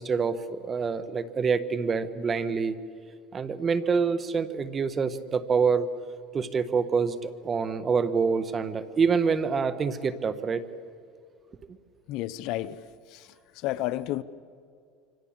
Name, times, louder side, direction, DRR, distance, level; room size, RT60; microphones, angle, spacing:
voice 1, 0.0-2.8 3.3-5.9 6.3-10.6, right 5 dB, 25° right, 1.4 m, -26 dB
voice 2, 12.1-12.8 13.1-13.3 13.6-14.2, left 15 dB, 60° left, 0.8 m, -31 dB
26.5 x 25.5 x 7.5 m
supercardioid pair, 115°, 0 cm